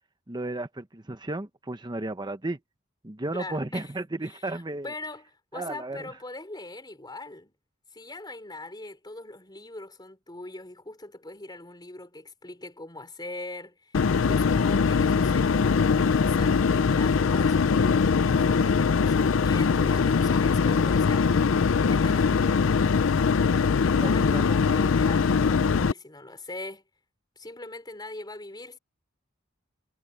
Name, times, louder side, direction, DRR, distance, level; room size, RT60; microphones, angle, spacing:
voice 1, 0.3-2.6 3.0-4.9 5.5-6.1 23.9-24.8, right 2 dB, 20° right, 0.9 m, -34 dB
voice 2, 3.3-3.9 4.2-7.5 7.9-21.3 21.9-22.8 23.9-26.8 27.4-28.8, left 2 dB, 20° left, 4.2 m, -41 dB
sound 1, 13.9-25.9, left 5 dB, 70° left, 0.5 m, -22 dB
head